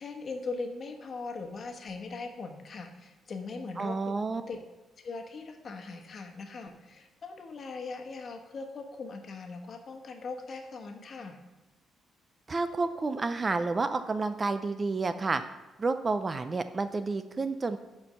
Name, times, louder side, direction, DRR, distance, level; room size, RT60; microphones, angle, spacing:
voice 1, 0.0-4.1 4.5-4.6 5.0-11.4, left 4 dB, 45° left, 4 dB, 1.2 m, -40 dB
voice 2, 3.8-4.4 12.5-15.4 15.8-17.8, right 3 dB, 30° right, 10 dB, 0.5 m, -30 dB
11.0 x 4.5 x 5.5 m, 1.1 s
cardioid pair, 120°, 0 cm